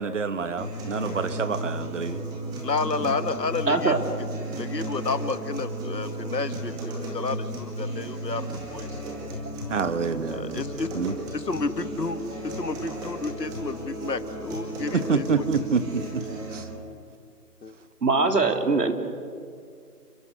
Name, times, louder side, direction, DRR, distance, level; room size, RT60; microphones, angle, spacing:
voice 1, 0.0-2.2 3.0-3.1 9.7-10.6 10.9-11.1 14.9-16.2 16.5-16.6, right 5 dB, 50° right, 12 dB, 1.4 m, -27 dB
sound 1, 0.6-16.6, right 1 dB, 10° right, 2.1 m, -34 dB
voice 2, 2.6-3.9 4.6-6.8 7.1-9.0 10.3-10.9 11.3-12.2 12.4-15.5 17.6-17.7, left 4 dB, 85° left, 11 dB, 1.8 m, -31 dB
voice 3, 3.7-4.0 18.0-18.9, right 3 dB, 75° right, 5 dB, 3.2 m, -21 dB
29.5 x 23.5 x 6.5 m, 2.2 s
figure-of-eight pair, 160°, 48 cm